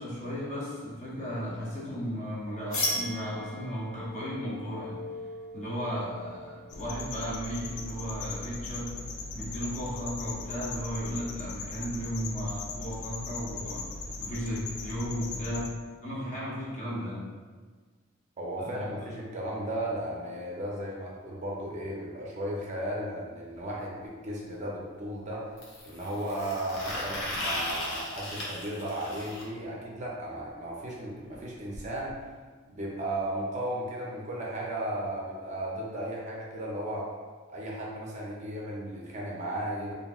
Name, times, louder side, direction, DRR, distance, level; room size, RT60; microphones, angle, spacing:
voice 1, 0.0-5.1 5.5-9.0 9.3-13.9 14.2-15.7 16.0-17.3 18.6-18.9, equal, 35° left, -6 dB, 0.7 m, -35 dB
sound 1, 2.7-8.3, left 1 dB, 70° left, 1.1 m, -38 dB
sound 2, 6.7-15.7, left 3 dB, 55° left, 0.3 m, -39 dB
voice 2, 18.4-25.6 25.8-32.2 32.7-37.1 37.5-39.9, right 1 dB, 35° right, -3 dB, 0.4 m, -35 dB
sound 3, 23.6-23.7 25.6-29.4 31.3-31.4 31.7-31.8 32.1-32.2 33.1-33.2, left 1 dB, 90° left, 0.8 m, -36 dB
2.8 x 2.6 x 2.3 m, 1.5 s
head